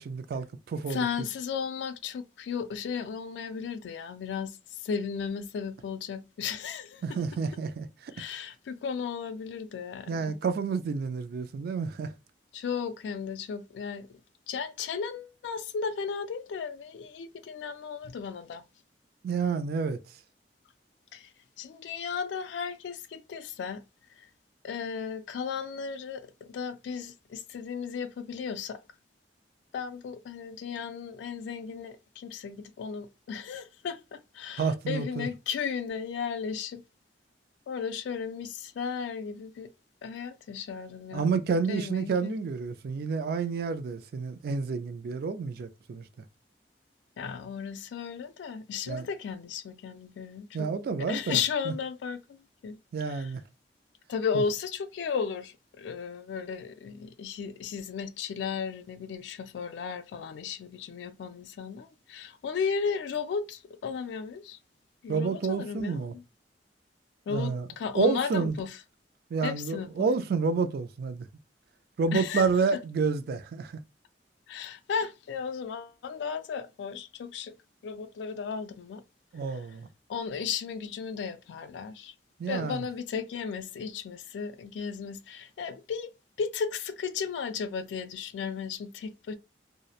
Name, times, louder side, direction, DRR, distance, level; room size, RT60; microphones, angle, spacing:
voice 1, 0.0-1.3 7.0-8.1 10.1-12.1 19.2-20.0 34.6-35.3 41.1-46.1 48.9-49.1 50.5-51.4 51.7-51.8 52.9-53.4 54.3-54.4 65.1-66.1 67.3-67.7 67.9-68.6 69.3-71.3 72.0-73.8 79.3-79.9 82.4-82.9, right 5 dB, 60° right, 0.3 m, -29 dB
voice 2, 0.9-7.2 8.1-10.4 12.5-14.1 14.5-18.6 21.1-21.3 21.6-23.8 24.2-24.3 24.6-28.8 29.7-36.8 37.7-39.7 40.0-41.2 41.7-42.3 47.2-50.7 51.1-53.3 54.1-64.6 65.0-66.2 67.3-68.8 69.4-69.9 72.1-72.4 74.5-77.5 77.8-79.0 79.5-79.6 80.1-82.1 82.5-86.1 86.4-89.3, left 6 dB, 75° left, 0.3 m, -35 dB
2.8 x 2.0 x 2.3 m
head